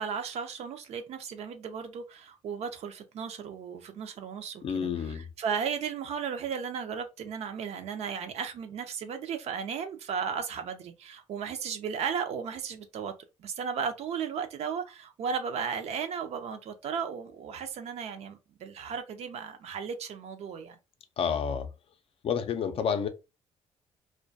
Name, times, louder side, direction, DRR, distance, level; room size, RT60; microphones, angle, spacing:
voice 1, 0.0-4.9 5.4-13.1 13.4-20.8, right 6 dB, 65° right, 0.4 m, -35 dB
voice 2, 4.6-5.3 21.2-21.7 22.2-23.1, left 7 dB, 55° left, 0.4 m, -29 dB
2.2 x 2.2 x 2.6 m
cardioid pair, 100°, 12 cm